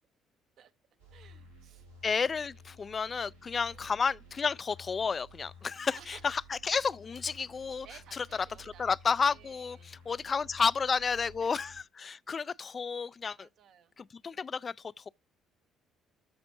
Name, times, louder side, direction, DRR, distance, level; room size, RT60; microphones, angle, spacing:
sound 1, 1.0-11.8, left 1 dB, 90° right, 4.0 m, -54 dB
voice 1, 1.1-1.9 2.2-2.3 3.6-3.9 5.9-6.3 7.8-10.4 11.4-11.5 12.3-12.5 13.4-13.9, right 9 dB, 55° right, 1.0 m, -57 dB
voice 2, 2.0-7.9 8.2-8.3 8.6-9.8 10.1-13.5 14.0-15.1, left 5 dB, 35° left, 0.4 m, -31 dB
13.5 x 5.2 x 2.7 m
figure-of-eight pair, 45°, 0 cm